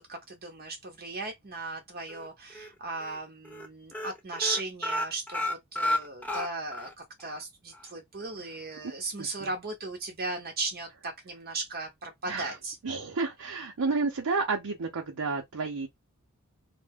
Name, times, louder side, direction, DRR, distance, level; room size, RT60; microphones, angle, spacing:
voice 1, 0.0-12.8, right 3 dB, 45° right, 0.7 m, -36 dB
sound 1, 2.1-2.7 3.0-3.2 3.5-3.7 3.9-6.9 7.3-7.4 7.7-7.8, left 1 dB, 5° left, 0.5 m, -32 dB
voice 2, 12.8-15.9, right 4 dB, 90° right, 0.7 m, -31 dB
2.6 x 2.1 x 3.4 m
head